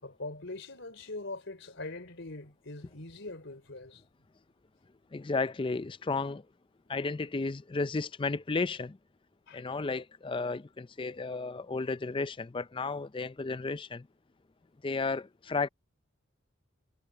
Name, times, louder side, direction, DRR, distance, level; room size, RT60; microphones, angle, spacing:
voice 1, 0.0-4.0 9.5-9.6, left 2 dB, 60° left, 4.2 m, -42 dB
voice 2, 5.1-6.4 6.9-9.0 9.5-14.1 14.8-15.7, left 3 dB, 25° left, 0.4 m, -33 dB
head